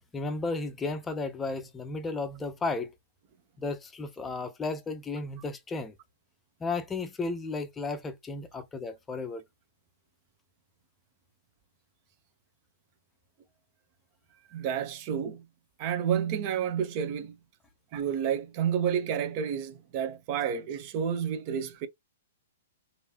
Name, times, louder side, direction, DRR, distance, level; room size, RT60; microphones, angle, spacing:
voice 1, 0.1-2.9 3.6-5.9 6.6-9.4, left 3 dB, 15° left, 0.6 m, -34 dB
voice 2, 14.5-15.4 15.8-17.3 17.9-21.9, right 8 dB, 40° right, 0.7 m, -30 dB
3.1 x 2.7 x 2.8 m
hypercardioid pair, 115°, 0 cm